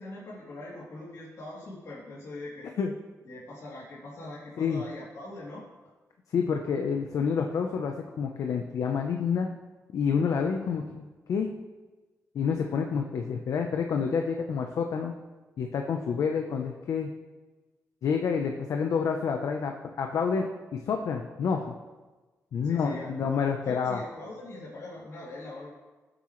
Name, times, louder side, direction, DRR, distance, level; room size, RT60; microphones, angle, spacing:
voice 1, 0.0-2.7 3.2-5.6 22.6-25.7, left 2 dB, 60° left, -7 dB, 3.2 m, -42 dB
voice 2, 6.3-9.5 9.9-11.5 12.3-15.1 15.6-17.1 18.0-20.5 20.7-21.7 22.5-24.0, left 6 dB, 75° left, 3 dB, 0.9 m, -28 dB
21.0 x 8.0 x 3.2 m, 1.2 s
wide cardioid pair, 135°, 6 cm